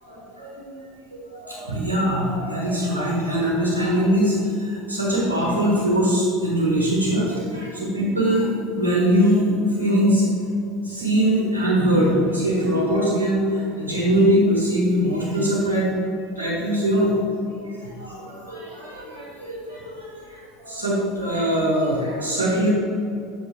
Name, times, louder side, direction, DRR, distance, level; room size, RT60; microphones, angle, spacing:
voice 1, 0.0-0.7 1.1-10.3 10.8-15.9 16.3-17.1 17.5-22.7, equal, 85° right, -6 dB, 1.6 m, -22 dB
7.8 x 6.5 x 3.3 m, 2.6 s
figure-of-eight pair, 75°, 0 cm